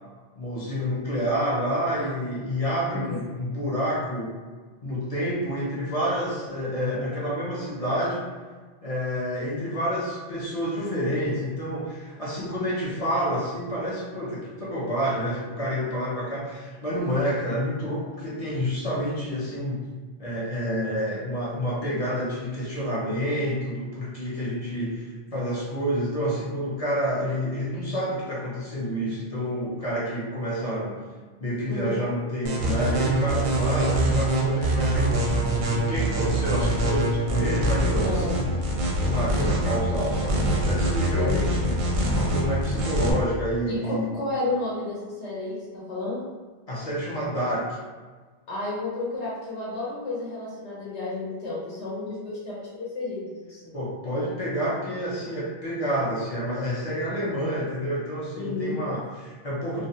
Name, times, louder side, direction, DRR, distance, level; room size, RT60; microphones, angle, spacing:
voice 1, 0.4-4.4 4.8-8.2 8.8-19.8 20.2-31.0 31.4-38.5 38.8-44.1 46.7-47.8 53.7-59.8, equal, 45° left, -7 dB, 0.5 m, -28 dB
voice 2, 2.9-3.2 10.8-11.0 31.7-31.9 33.8-33.9 38.0-38.3 41.1-41.4 43.7-46.3 48.5-53.7 58.3-58.8, left 2 dB, 85° left, -6 dB, 1.0 m, -32 dB
sound 1, 32.4-43.1, right 1 dB, 60° right, 0.6 m, -24 dB
2.4 x 2.1 x 2.7 m, 1.4 s
omnidirectional pair, 1.1 m